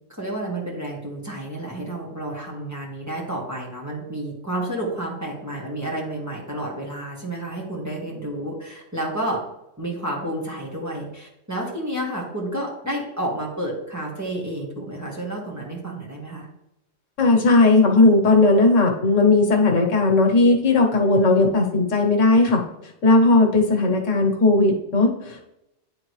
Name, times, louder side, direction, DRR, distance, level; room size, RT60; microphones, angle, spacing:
voice 1, 0.2-9.4 9.8-16.5, right 1 dB, 15° right, -4 dB, 1.5 m, -30 dB
voice 2, 17.2-22.6 23.0-25.4, left 2 dB, 90° left, 3 dB, 1.3 m, -17 dB
9.9 x 3.7 x 3.1 m, 0.88 s
omnidirectional pair, 1.3 m